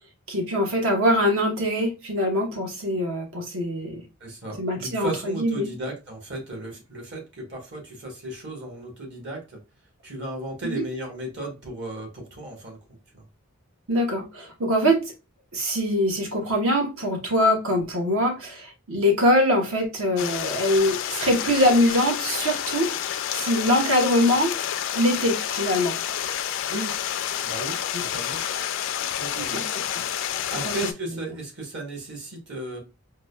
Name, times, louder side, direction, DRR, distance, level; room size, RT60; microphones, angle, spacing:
voice 1, 0.3-4.0 4.6-5.7 10.6-10.8 13.9-15.0 15.5-24.5 24.9-25.9 27.9-28.0 29.4-30.0 30.7-30.8, equal, 70° right, 1.0 m, -23 dB
voice 2, 4.2-9.6 10.0-12.8 13.1-13.2 26.7-26.9 27.4-28.4 29.1-29.7 30.5-32.8, right 2 dB, 55° right, 1.3 m, -35 dB
Stream, 20.2-30.9, left 10 dB, 60° left, 0.3 m, -29 dB
4.8 x 2.2 x 2.3 m
head